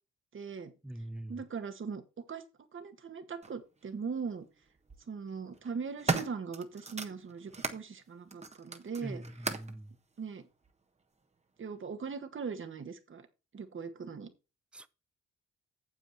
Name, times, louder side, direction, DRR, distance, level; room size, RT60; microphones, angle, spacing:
voice 1, 0.3-0.7 1.3-2.4 2.7-4.5 5.1-9.2 10.2-10.4 11.6-13.3 13.5-14.3, right 5 dB, 40° right, 1.9 m, -40 dB
voice 2, 0.8-1.4 9.0-10.0 14.7-14.9, right 1 dB, 5° right, 0.6 m, -43 dB
sound 1, 3.4-3.5 4.6-5.0 5.5-7.8 8.3-9.8 10.6-10.7, right 3 dB, 20° right, 1.4 m, -37 dB
9.2 x 7.3 x 4.2 m
cardioid pair, 90°, 30 cm